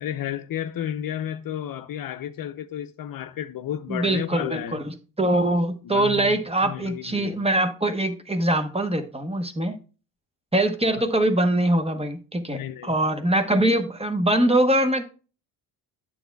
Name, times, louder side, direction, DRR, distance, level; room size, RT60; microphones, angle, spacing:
voice 1, 0.0-4.8 5.8-7.4 12.5-13.0, left 10 dB, 50° left, 0.6 m, -32 dB
voice 2, 3.9-9.8 10.5-15.0, right 1 dB, 15° right, 1.0 m, -23 dB
9.0 x 7.2 x 2.3 m
supercardioid pair, 70°, 43 cm